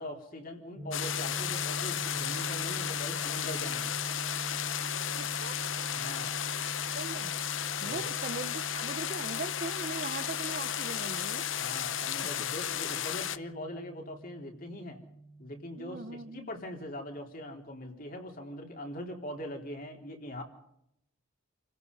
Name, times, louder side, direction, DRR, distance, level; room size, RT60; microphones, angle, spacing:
voice 1, 0.0-4.0 5.9-6.4 7.8-8.1 11.6-15.0 15.4-16.0 16.3-20.4, left 1 dB, 45° left, 2 dB, 3.9 m, -42 dB
sound 1, 0.8-16.4, right 2 dB, 20° right, 2.3 m, -44 dB
sound 2, 0.9-13.4, left 10 dB, 70° left, 0.9 m, -34 dB
voice 2, 5.2-5.6 6.9-7.3 7.8-11.5 15.8-16.5, right 3 dB, 45° right, 14 dB, 0.8 m, -40 dB
29.0 x 16.5 x 5.5 m, 0.75 s
head